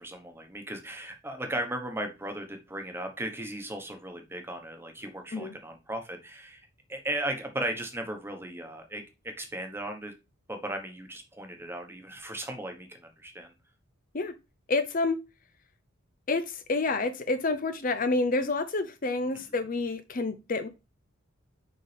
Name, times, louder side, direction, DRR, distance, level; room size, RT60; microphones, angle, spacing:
voice 1, 0.0-6.6 6.9-10.1 10.5-13.5, right 1 dB, 10° right, 1.1 m, -36 dB
voice 2, 14.7-15.2 16.3-20.7, left 3 dB, 40° left, 0.6 m, -28 dB
6.9 x 5.4 x 3.4 m
head